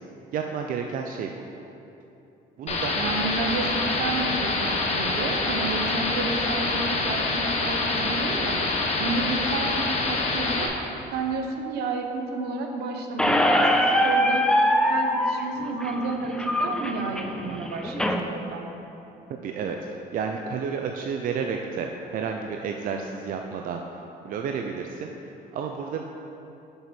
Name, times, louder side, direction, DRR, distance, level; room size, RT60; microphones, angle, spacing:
voice 1, 0.3-1.3 2.6-2.9 3.5-3.6 9.2-9.3 19.4-26.0, right 6 dB, 55° right, 3 dB, 0.5 m, -31 dB
sound 1, 2.7-10.7, left 3 dB, 40° left, 1.0 m, -26 dB
voice 2, 3.0-8.6 9.0-10.7 11.1-14.5 14.8-18.6, right 3 dB, 75° right, 3 dB, 0.9 m, -31 dB
Squeak, 13.2-18.2, equal, 5° left, 0.4 m, -23 dB
6.6 x 6.2 x 4.3 m, 2.9 s
cardioid pair, 110°, 17 cm